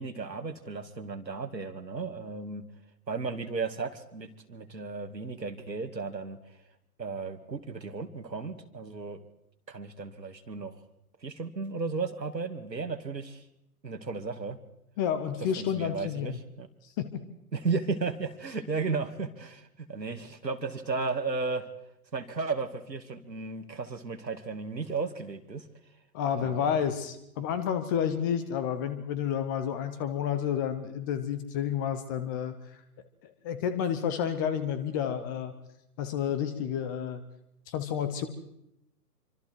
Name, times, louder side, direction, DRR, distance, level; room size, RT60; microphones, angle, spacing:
voice 1, 0.0-2.6 3.1-6.6 7.0-9.2 9.7-10.8 11.2-13.4 13.8-14.6 15.6-16.7 17.5-21.7 22.1-25.7 26.4-26.8 27.4-27.5, right 4 dB, 85° right, 7 dB, 2.5 m, -34 dB
voice 2, 15.0-16.4 16.8-17.2 26.1-32.8 33.2-35.5 36.0-37.2 37.7-38.3, left 8 dB, 15° left, 12 dB, 0.7 m, -30 dB
26.5 x 25.0 x 4.7 m, 0.80 s
figure-of-eight pair, 135°, 49 cm